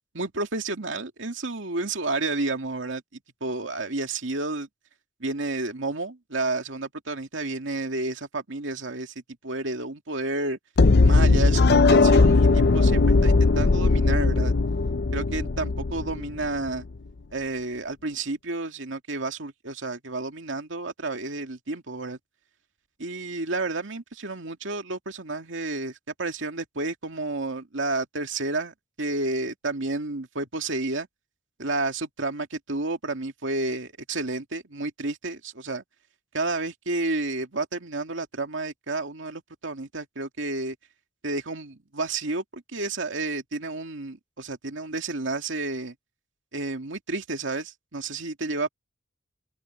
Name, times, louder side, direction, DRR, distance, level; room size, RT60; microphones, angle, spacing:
voice 1, 0.1-4.7 5.2-9.1 9.4-10.6 11.0-14.5 15.1-16.9 17.3-22.2 23.0-31.1 31.6-35.8 36.3-40.8 41.2-45.9 46.5-48.7, right 2 dB, 80° right, 2.4 m, -31 dB
sound 1, 10.8-16.7, left 3 dB, 60° left, 0.6 m, -19 dB
open air
head